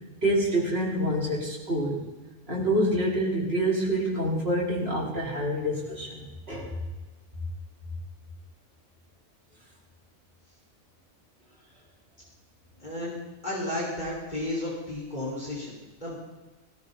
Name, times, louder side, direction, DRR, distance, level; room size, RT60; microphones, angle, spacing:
voice 1, 0.2-2.1 2.5-6.7, right 1 dB, 45° right, -4 dB, 4.6 m, -27 dB
voice 2, 12.8-13.2 13.4-16.2, left 1 dB, 30° left, -6 dB, 5.4 m, -33 dB
17.5 x 17.0 x 4.2 m, 1.2 s
omnidirectional pair, 1.5 m